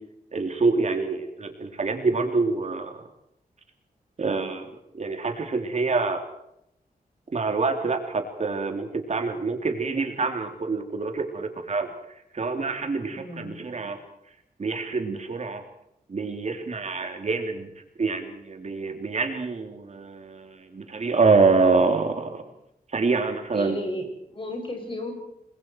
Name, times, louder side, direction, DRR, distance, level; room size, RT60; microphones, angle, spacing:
voice 1, 0.3-3.0 4.2-4.6 4.9-6.2 7.3-11.9 12.3-14.0 14.6-15.6 16.1-17.7 18.0-22.4 22.9-23.8, right 4 dB, 50° right, 5 dB, 3.3 m, -26 dB
voice 2, 13.1-13.7 23.5-25.1, left 1 dB, 35° left, 3 dB, 7.0 m, -34 dB
29.5 x 22.0 x 4.7 m, 0.79 s
wide cardioid pair, 170°, 15 cm